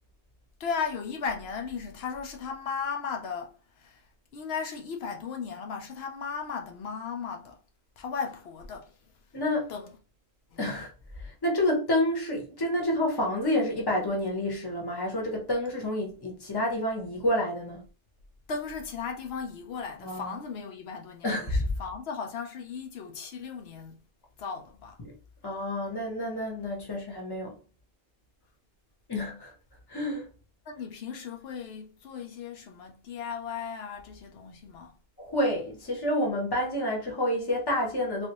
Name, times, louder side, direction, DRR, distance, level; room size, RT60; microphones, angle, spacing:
voice 1, 0.6-4.1 4.3-7.6 8.0-8.9 9.7-10.0 10.5-10.7 18.5-24.0 24.4-25.0 30.7-35.0, left 6 dB, 80° left, 0.8 m, -36 dB
voice 2, 9.3-9.7 10.6-10.9 11.2-17.8 20.0-20.3 21.2-21.7 25.0-25.1 25.4-27.5 29.1-29.5 29.9-30.3 35.2-38.3, left 1 dB, 25° left, 0.9 m, -29 dB
3.2 x 2.5 x 2.9 m
omnidirectional pair, 1.0 m